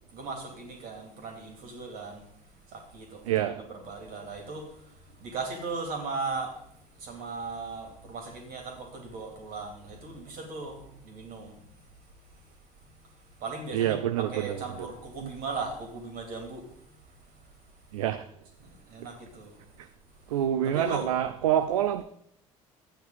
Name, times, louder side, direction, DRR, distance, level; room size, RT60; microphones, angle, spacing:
voice 1, 0.1-2.2 2.7-4.7 5.2-6.6 7.0-11.6 13.4-16.7 18.6-19.6 20.6-21.1, right 3 dB, 60° right, 2.9 m, -37 dB
voice 2, 3.2-3.6 13.7-14.9 15.2-15.3 17.9-18.3 19.8-19.9 20.3-22.0, right 11 dB, 75° right, 0.5 m, -27 dB
13.5 x 9.2 x 3.9 m
figure-of-eight pair, 55°, 18 cm